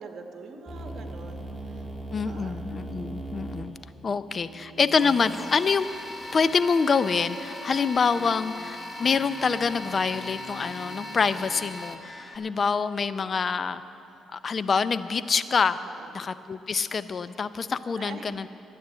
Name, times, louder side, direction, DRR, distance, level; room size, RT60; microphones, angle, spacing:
voice 1, 0.0-1.8 2.3-2.6 13.1-13.3 15.8-16.1 18.0-18.5, right 4 dB, 60° right, 4 dB, 1.3 m, -44 dB
sound 1, 0.7-6.6, right 2 dB, 15° right, 2.1 m, -40 dB
voice 2, 2.1-3.7 4.0-5.9 6.3-12.0 12.3-13.8 14.3-15.8 16.1-18.5, left 5 dB, 40° left, 14 dB, 0.5 m, -26 dB
sound 2, 4.4-5.2 6.3-11.4, left 1 dB, 90° left, 1.6 m, -47 dB
sound 3, 5.0-12.4, left 1 dB, 25° left, 1.2 m, -39 dB
12.5 x 9.7 x 7.6 m, 2.7 s
cardioid pair, 90°, 0 cm